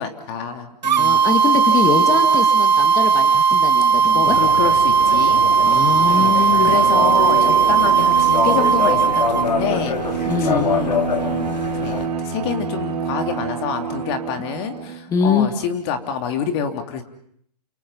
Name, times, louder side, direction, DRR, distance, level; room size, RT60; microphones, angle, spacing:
voice 1, 0.0-1.2 4.1-5.4 6.1-17.0, left 7 dB, 40° left, 6 dB, 3.1 m, -27 dB
sound 1, 0.8-9.5, right 6 dB, 85° right, 1.3 m, -16 dB
voice 2, 1.0-4.4 5.6-6.8 10.2-10.7 15.1-15.5, left 6 dB, 15° left, 5 dB, 2.1 m, -23 dB
sound 2, 4.2-12.1, left 6 dB, 90° left, 2.7 m, -26 dB
Bowed string instrument, 6.5-15.0, right 6 dB, 65° right, 3.5 m, -28 dB
29.5 x 28.0 x 5.7 m, 0.66 s
hypercardioid pair, 145°, 21 cm